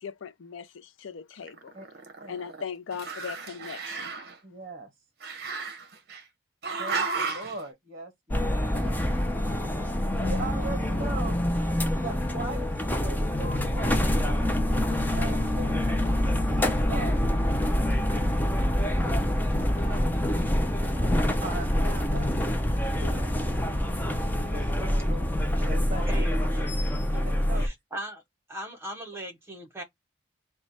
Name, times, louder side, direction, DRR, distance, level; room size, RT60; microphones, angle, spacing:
voice 1, 0.0-1.7 2.3-4.1, left 6 dB, 75° left, 0.5 m, -39 dB
Growling, 1.4-2.6 2.9-4.3 5.2-6.2 6.6-7.6, right 4 dB, 50° right, 0.8 m, -33 dB
voice 2, 4.4-4.9 6.8-9.0 10.1-11.4 11.7-14.2 14.9-15.8 16.9-17.2 19.7-20.1 20.6-21.1 21.4-22.3 22.8-23.3 24.3-26.1 27.5-27.7, right 2 dB, 35° right, 1.1 m, -40 dB
sound 1, 8.3-27.7, left 1 dB, 10° left, 0.4 m, -26 dB
voice 3, 26.1-27.2 27.5-28.2 28.5-29.8, equal, 15° right, 0.9 m, -39 dB
3.1 x 2.3 x 4.0 m
head